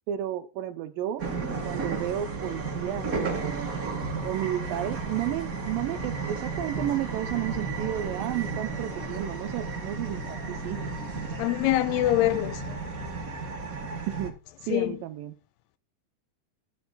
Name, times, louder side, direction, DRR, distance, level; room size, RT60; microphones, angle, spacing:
voice 1, 0.1-1.2 1.6-3.7 4.2-10.8 14.1-14.4 14.6-15.4, right 12 dB, 75° right, 2.2 m, -32 dB
sound 1, 1.2-14.3, right 4 dB, 35° right, 1.4 m, -33 dB
sound 2, 2.6-11.4, left 3 dB, 40° left, 2.7 m, -49 dB
voice 2, 11.4-12.8 14.7-14.9, left 15 dB, 80° left, 2.7 m, -24 dB
10.5 x 10.5 x 4.1 m
omnidirectional pair, 4.7 m